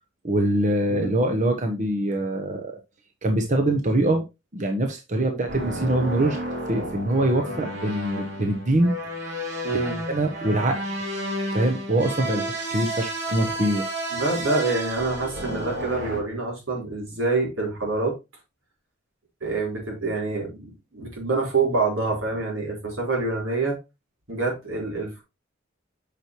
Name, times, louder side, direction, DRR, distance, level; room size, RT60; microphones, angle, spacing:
voice 1, 0.2-2.7 3.2-4.2 4.5-6.4 6.7-8.9 10.1-11.0 11.5-13.9, right 1 dB, 40° right, 1.0 m, -23 dB
sound 1, 5.5-16.2, right 1 dB, 60° right, 3.1 m, -32 dB
voice 2, 9.6-10.0 14.1-18.1 19.4-23.8 24.3-25.2, right 3 dB, 80° right, 4.1 m, -26 dB
8.8 x 5.9 x 3.1 m
head